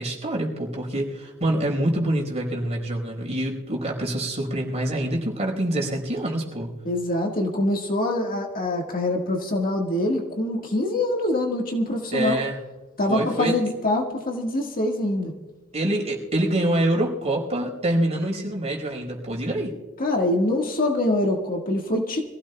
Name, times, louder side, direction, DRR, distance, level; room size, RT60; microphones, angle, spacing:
voice 1, 0.0-6.7 12.1-12.6 13.1-13.5 15.7-19.7, right 1 dB, 30° right, -1 dB, 4.8 m, -26 dB
voice 2, 6.9-12.4 13.0-15.3 20.0-22.2, left 1 dB, 40° left, 1 dB, 1.7 m, -24 dB
26.0 x 16.0 x 2.3 m, 1.2 s
head